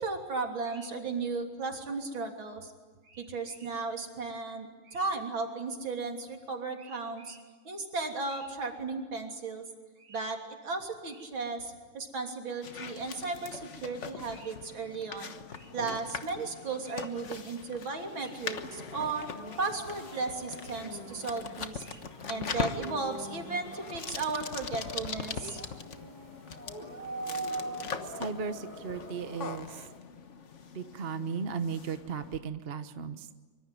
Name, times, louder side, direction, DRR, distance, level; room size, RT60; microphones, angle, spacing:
voice 1, 0.0-2.7 3.1-9.6 10.0-22.0 22.3-25.6 27.8-27.9, right 4 dB, 65° right, 3 dB, 3.9 m, -35 dB
sound 1, 12.6-32.4, left 5 dB, 40° left, 1.3 m, -42 dB
sound 2, 18.4-30.0, right 1 dB, 20° left, 3.0 m, -43 dB
voice 2, 28.0-29.8 30.7-33.3, right 6 dB, 40° right, 10 dB, 1.0 m, -36 dB
24.5 x 24.5 x 9.3 m, 1.4 s
omnidirectional pair, 2.3 m